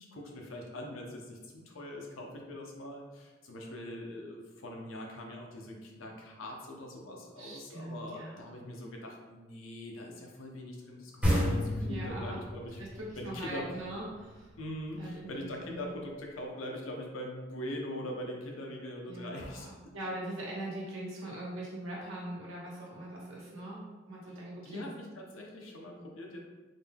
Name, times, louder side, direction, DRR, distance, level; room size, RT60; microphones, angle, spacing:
voice 1, 0.1-12.8 13.2-13.6 14.6-19.7 24.6-26.4, left 1 dB, 85° left, 0 dB, 0.7 m, -42 dB
voice 2, 7.4-8.4 11.8-12.4 12.8-14.5 15.0-15.9 19.1-24.9, right 1 dB, 90° right, -4 dB, 1.2 m, -41 dB
sound 1, 11.2-14.6, equal, 5° right, 1.1 m, -31 dB
3.9 x 2.3 x 3.4 m, 1.2 s
head